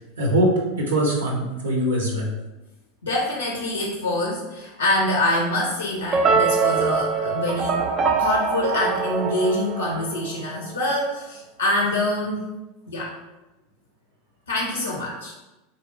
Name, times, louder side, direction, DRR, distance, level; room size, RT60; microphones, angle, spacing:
voice 1, 0.2-2.3, right 1 dB, 80° right, -1 dB, 0.6 m, -22 dB
voice 2, 3.0-7.8 8.2-12.4 12.9-13.1 14.5-15.3, left 1 dB, 85° left, -2 dB, 0.5 m, -25 dB
sound 1, 6.1-10.4, right 5 dB, 30° right, 0.4 m, -23 dB
3.4 x 2.7 x 2.8 m, 1.0 s
figure-of-eight pair, 85°, 0 cm